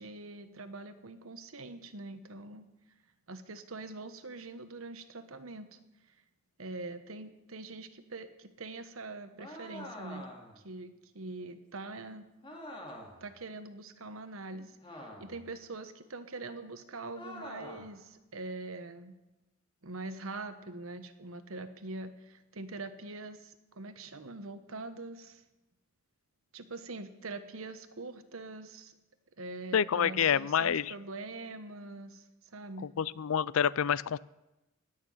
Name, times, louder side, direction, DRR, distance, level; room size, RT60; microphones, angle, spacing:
voice 1, 0.0-2.7 3.3-5.8 6.6-10.3 10.6-12.2 13.2-19.1 19.8-25.4 26.5-28.9 29.4-32.2 32.5-32.9, right 2 dB, 80° right, 9 dB, 1.3 m, -43 dB
sound 1, 9.4-10.6 12.4-13.3 14.8-15.5 17.1-17.9, left 1 dB, 25° left, 2.4 m, -46 dB
voice 2, 29.7-30.9 33.0-34.2, left 8 dB, 80° left, 21 dB, 0.4 m, -27 dB
17.0 x 6.8 x 9.9 m, 0.99 s
head